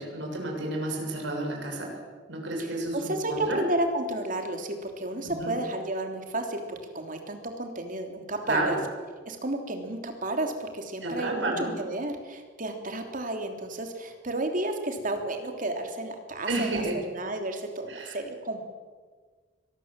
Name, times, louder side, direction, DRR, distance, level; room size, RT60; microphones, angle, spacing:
voice 1, 0.0-1.9 2.3-3.6 5.2-5.6 8.5-8.8 11.0-11.7 16.5-17.0 17.9-18.2, right 2 dB, 85° right, 0 dB, 7.0 m, -31 dB
voice 2, 2.9-8.8 9.2-11.5 11.8-16.8 17.1-18.7, right 1 dB, 50° right, 5 dB, 3.3 m, -32 dB
23.5 x 19.5 x 7.6 m, 1.5 s
head